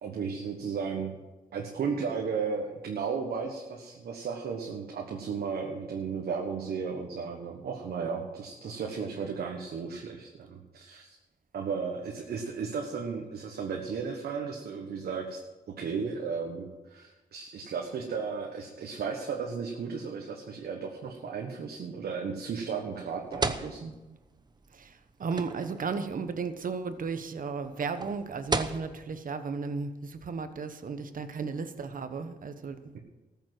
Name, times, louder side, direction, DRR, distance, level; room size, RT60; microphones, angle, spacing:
voice 1, 0.0-1.1 1.5-11.2 11.5-15.4 15.8-23.9, right 5 dB, 85° right, 1 dB, 1.4 m, -34 dB
sound 1, 22.9-29.2, right 3 dB, 25° right, 1.0 m, -35 dB
voice 2, 24.7-33.0, right 5 dB, 60° right, 9 dB, 1.2 m, -35 dB
14.0 x 7.2 x 7.8 m, 1.1 s
cardioid pair, 65°, 16 cm